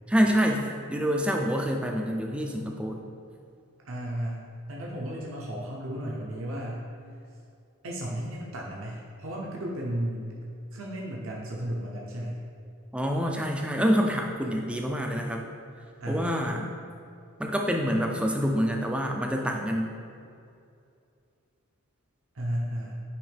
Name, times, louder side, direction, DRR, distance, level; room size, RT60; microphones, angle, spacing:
voice 1, 0.1-3.0 12.9-15.5 16.1-16.7 17.4-19.9, equal, 5° right, 1 dB, 0.4 m, -27 dB
voice 2, 3.8-4.4 4.7-6.8 7.8-10.4 10.7-12.4 16.0-16.5 22.3-23.0, right 1 dB, 65° right, -3 dB, 0.7 m, -34 dB
9.1 x 3.1 x 3.3 m, 2.5 s
head